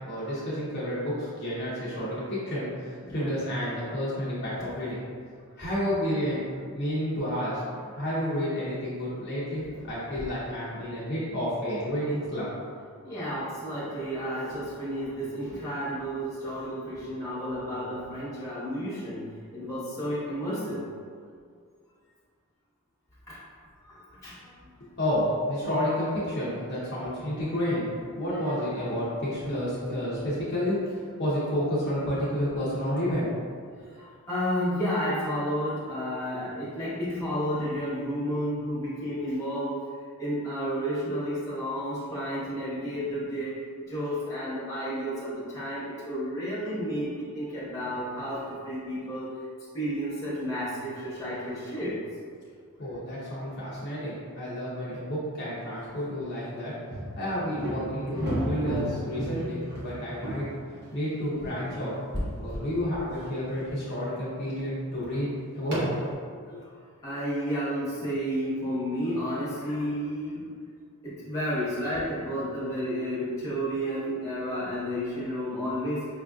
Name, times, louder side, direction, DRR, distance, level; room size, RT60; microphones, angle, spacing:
voice 1, 0.1-5.0 5.6-7.6 8.0-12.5 25.0-27.9 28.1-33.3 52.8-56.8 57.2-60.5 60.9-61.9 62.3-65.3 65.5-65.8 66.3-66.6, equal, 50° left, -9 dB, 0.7 m, -30 dB
voice 2, 13.0-19.2 19.5-20.9 23.3-23.4 23.8-23.9 24.2-24.4 28.2-28.9 29.5-29.6 33.9-39.7 40.2-43.5 43.8-49.3 49.7-52.0 58.1-58.4 61.4-61.7 67.0-70.4 71.0-76.1, equal, 15° left, -10 dB, 1.2 m, -31 dB
sound 1, 51.3-51.7 56.9-61.8 62.5-62.6 63.2-63.7 64.4-64.6 65.6-66.1, equal, 50° right, 0.9 m, -33 dB
5.3 x 2.5 x 2.3 m, 2.1 s
head